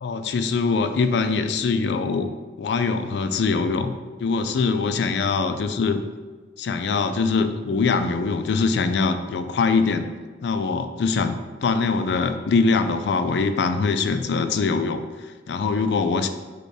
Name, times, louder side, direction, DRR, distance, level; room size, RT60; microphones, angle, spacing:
voice 1, 0.0-2.3 2.6-3.9 4.2-6.0 6.6-10.1 10.4-16.3, left 4 dB, 70° left, 9 dB, 0.3 m, -23 dB
5.0 x 2.2 x 4.7 m, 1.4 s
head